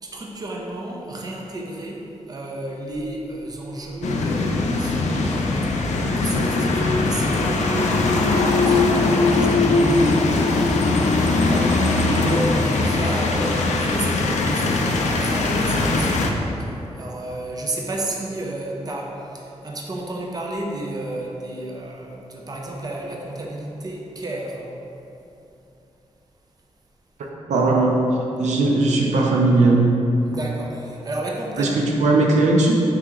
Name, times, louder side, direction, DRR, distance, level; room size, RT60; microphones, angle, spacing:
voice 1, 0.0-24.7 30.2-31.9, right 1 dB, 35° right, -1 dB, 0.6 m, -32 dB
sound 1, 4.0-16.3, left 3 dB, 80° left, 0.4 m, -20 dB
voice 2, 27.5-28.0 28.4-29.9 31.6-32.7, right 2 dB, 90° right, -1 dB, 0.5 m, -18 dB
4.7 x 2.8 x 3.6 m, 2.9 s
cardioid pair, 95°, 12 cm